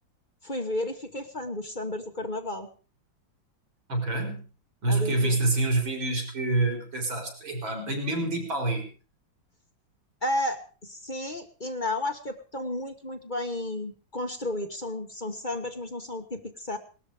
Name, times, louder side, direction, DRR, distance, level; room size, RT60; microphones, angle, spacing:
voice 1, 0.4-2.7 4.9-5.4 10.2-16.8, left 1 dB, 25° left, 6 dB, 1.5 m, -32 dB
voice 2, 3.9-4.5 4.8-8.9, right 2 dB, 85° right, 4 dB, 5.6 m, -27 dB
19.0 x 13.0 x 5.0 m, 0.37 s
omnidirectional pair, 2.1 m